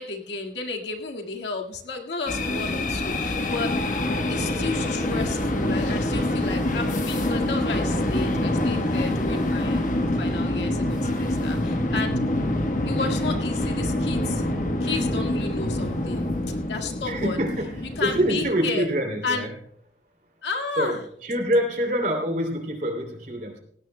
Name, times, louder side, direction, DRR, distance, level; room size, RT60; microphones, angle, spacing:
voice 1, 0.0-3.7 4.3-9.8 10.2-12.2 12.9-14.5 14.8-16.3 16.7-17.4 18.0-18.9 19.2-19.5 20.4-21.0, left 4 dB, 80° left, 2 dB, 1.9 m, -32 dB
sound 1, 2.3-18.5, left 1 dB, 45° left, 1.3 m, -26 dB
voice 2, 4.1-4.9 6.3-6.4 11.0-11.1 17.0-19.5 20.8-20.9 21.2-23.6, equal, 45° right, 3 dB, 3.0 m, -26 dB
18.5 x 16.5 x 2.2 m, 0.67 s
head